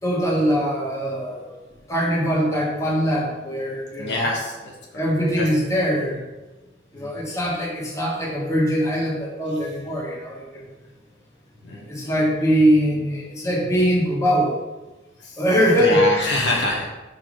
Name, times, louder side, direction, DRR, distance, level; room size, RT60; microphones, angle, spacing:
voice 1, 0.0-1.4 1.9-4.3 4.9-6.2 6.9-10.6 11.9-14.6 15.4-16.1, equal, 15° left, -4 dB, 1.6 m, -22 dB
voice 2, 4.0-5.0 5.3-5.5 7.0-7.1 11.6-11.9 15.2-15.4 15.8-16.8, left 1 dB, 70° left, -2 dB, 1.4 m, -25 dB
7.0 x 4.3 x 4.8 m, 1.1 s
head